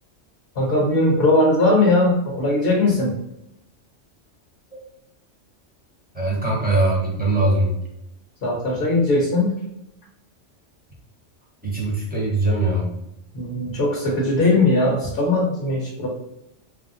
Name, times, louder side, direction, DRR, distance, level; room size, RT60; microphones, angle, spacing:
voice 1, 0.6-3.1 8.4-9.5 13.3-16.1, left 2 dB, 60° left, -3 dB, 1.0 m, -19 dB
voice 2, 6.1-7.8 11.6-12.9, right 2 dB, 10° right, -4 dB, 0.8 m, -21 dB
3.1 x 2.7 x 2.6 m, 0.82 s
omnidirectional pair, 1.3 m